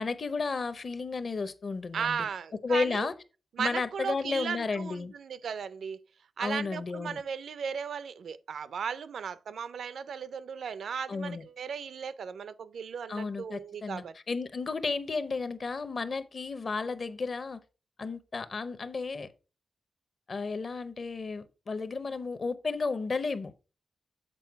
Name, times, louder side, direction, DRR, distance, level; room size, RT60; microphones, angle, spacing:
voice 1, 0.0-2.3 2.6-3.1 3.6-5.1 6.4-7.2 11.1-11.4 13.1-17.6 18.0-19.3 20.3-23.5, left 4 dB, 40° left, 0.6 m, -33 dB
voice 2, 1.9-3.1 3.6-6.0 6.4-14.1, right 7 dB, 75° right, 0.4 m, -36 dB
7.6 x 4.4 x 4.5 m
wide cardioid pair, 155°, 0 cm